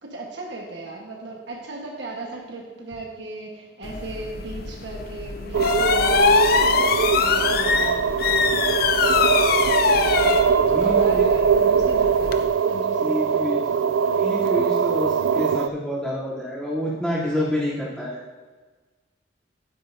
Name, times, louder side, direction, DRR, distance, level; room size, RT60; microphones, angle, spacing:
voice 1, 0.0-6.6 7.2-8.9 10.5-13.8, right 2 dB, 65° right, -1 dB, 1.4 m, -37 dB
sound 1, 3.8-12.4, left 5 dB, 55° left, 0.5 m, -23 dB
sound 2, 5.5-15.7, right 6 dB, 90° right, 0.4 m, -22 dB
voice 2, 9.8-10.3 10.7-11.3 13.0-18.2, left 1 dB, 5° left, -9 dB, 3.0 m, -28 dB
11.5 x 9.8 x 2.7 m, 1.3 s
head